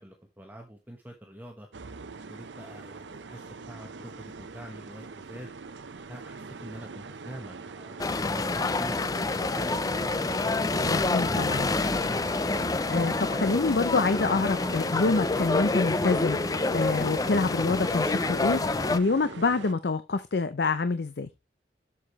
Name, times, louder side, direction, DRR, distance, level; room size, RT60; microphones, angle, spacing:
voice 1, 0.0-1.7 2.3-5.5 6.1-10.1 10.7-12.3, right 1 dB, 10° right, 1.1 m, -45 dB
sound 1, 1.7-19.7, right 4 dB, 90° right, 0.7 m, -43 dB
sound 2, 8.0-19.0, left 3 dB, 20° left, 0.4 m, -27 dB
voice 2, 10.9-11.6 12.9-21.3, left 3 dB, 65° left, 0.6 m, -27 dB
7.4 x 7.1 x 3.1 m
head